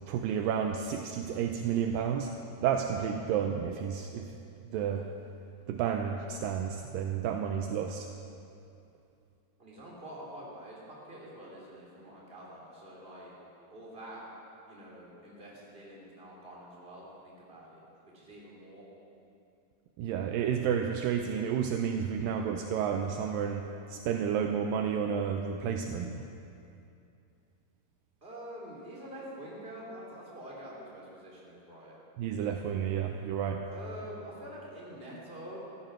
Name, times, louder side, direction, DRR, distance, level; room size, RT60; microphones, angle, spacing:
voice 1, 0.1-2.3 2.6-4.3 4.7-5.1 5.7-8.1 20.0-26.2 32.2-33.7, right 8 dB, 80° right, 4 dB, 2.1 m, -31 dB
voice 2, 9.6-13.4 13.7-14.2 14.7-17.8 18.1-18.8 28.2-31.9 33.7-35.6, right 1 dB, 15° right, -6 dB, 3.3 m, -46 dB
14.5 x 14.5 x 6.0 m, 2.6 s
omnidirectional pair, 4.5 m